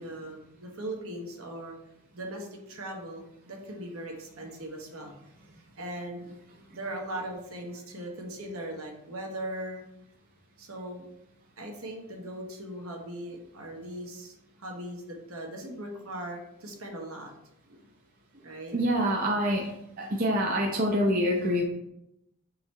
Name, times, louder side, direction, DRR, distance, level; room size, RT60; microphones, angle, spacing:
voice 1, 0.0-1.7 2.1-5.1 5.8-6.3 6.7-9.8 10.6-11.0 11.6-17.3 18.4-18.8, right 1 dB, 70° right, 1 dB, 0.9 m, -39 dB
voice 2, 18.7-19.7 20.0-21.6, equal, 40° right, -1 dB, 0.5 m, -26 dB
3.8 x 3.0 x 4.2 m, 0.82 s
head